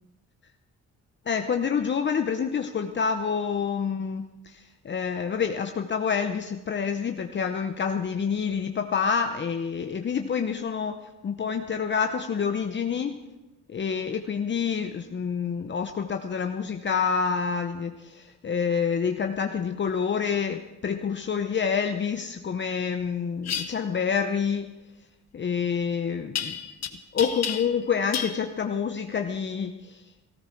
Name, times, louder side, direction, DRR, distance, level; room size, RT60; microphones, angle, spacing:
voice 1, 1.3-13.1 13.7-24.7 25.3-26.6 27.1-30.0, left 6 dB, 40° left, 6 dB, 0.9 m, -28 dB
sound 1, 23.4-23.7 26.4-26.9 27.2-27.8 28.1-28.4, left 8 dB, 60° left, 1.5 m, -30 dB
18.0 x 14.5 x 4.6 m, 1.1 s
cardioid pair, 90°, 30 cm